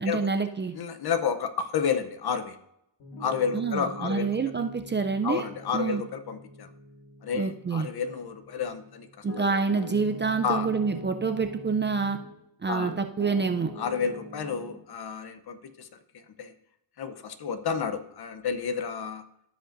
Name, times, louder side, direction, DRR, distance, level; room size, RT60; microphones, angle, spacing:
voice 1, 0.0-0.7 3.5-5.5 5.7-6.0 7.3-7.9 9.2-12.2 12.6-13.7, right 5 dB, 25° right, 7 dB, 0.5 m, -27 dB
voice 2, 0.7-2.6 3.2-4.3 5.2-6.7 7.2-9.1 10.4-10.7 12.7-12.9 13.8-15.9 16.4-16.5 17.0-19.2, left 6 dB, 55° left, 9 dB, 0.9 m, -30 dB
Piano, 3.0-12.4 12.8-14.8, left 1 dB, 80° left, 2.5 m, -43 dB
15.5 x 5.2 x 2.6 m, 0.78 s
cardioid pair, 95°, 46 cm